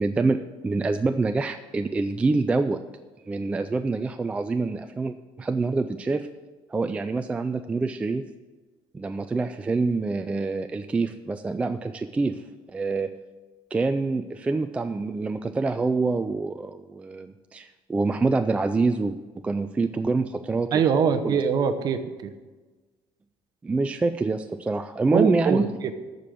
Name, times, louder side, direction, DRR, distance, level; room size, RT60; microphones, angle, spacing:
voice 1, 0.0-2.8 3.3-6.3 6.7-8.3 8.9-12.4 12.7-13.1 13.7-19.2 19.4-21.4 23.6-25.6, right 3 dB, 15° right, 8 dB, 0.3 m, -26 dB
voice 2, 20.7-22.3 25.1-25.9, right 7 dB, 45° right, 9 dB, 0.9 m, -23 dB
13.5 x 5.2 x 7.7 m, 1.3 s
cardioid pair, 160°, 10 cm